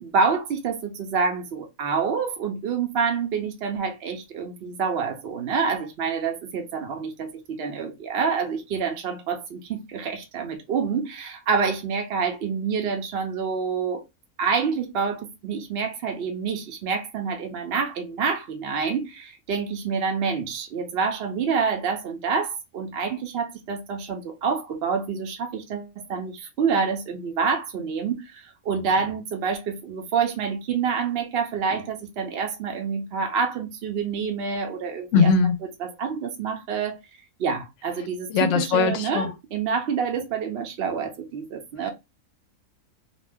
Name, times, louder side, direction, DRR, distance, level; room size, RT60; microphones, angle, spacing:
voice 1, 0.0-14.0 14.4-35.3 35.8-37.0 37.4-41.9, right 5 dB, 60° right, 0.7 m, -27 dB
voice 2, 35.1-35.6 38.3-39.3, left 5 dB, 70° left, 0.8 m, -20 dB
2.6 x 2.1 x 3.3 m
omnidirectional pair, 1.4 m